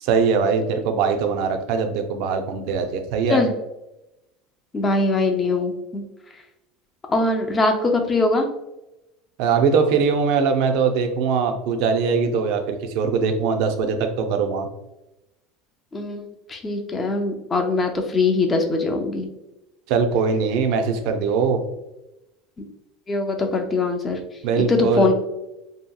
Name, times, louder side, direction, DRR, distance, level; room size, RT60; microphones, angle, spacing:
voice 1, 0.0-3.4 9.4-14.7 19.9-21.6 24.4-25.1, right 5 dB, 65° right, 6 dB, 0.4 m, -21 dB
voice 2, 4.7-6.0 7.1-8.5 15.9-19.3 23.1-24.2 24.7-25.1, left 3 dB, 20° left, 4 dB, 0.4 m, -22 dB
2.8 x 2.7 x 2.2 m, 0.93 s
supercardioid pair, 145°, 0 cm